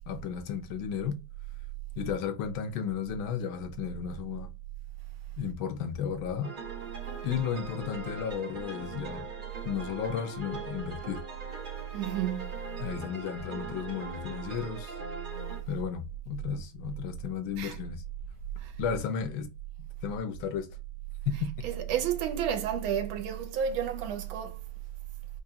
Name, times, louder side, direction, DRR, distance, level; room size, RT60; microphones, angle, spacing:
voice 1, 0.1-1.2 2.0-4.5 5.4-6.5 7.2-9.3 9.6-11.2 12.8-15.0 15.7-18.0 18.8-19.5 20.0-20.7 21.3-21.5, left 7 dB, 80° left, 1.5 m, -33 dB
sound 1, 6.4-15.6, right 3 dB, 55° right, 0.5 m, -41 dB
voice 2, 11.9-12.5 17.6-17.8 18.6-18.7 21.6-24.6, right 9 dB, 85° right, 1.5 m, -31 dB
4.7 x 2.3 x 2.7 m
omnidirectional pair, 2.1 m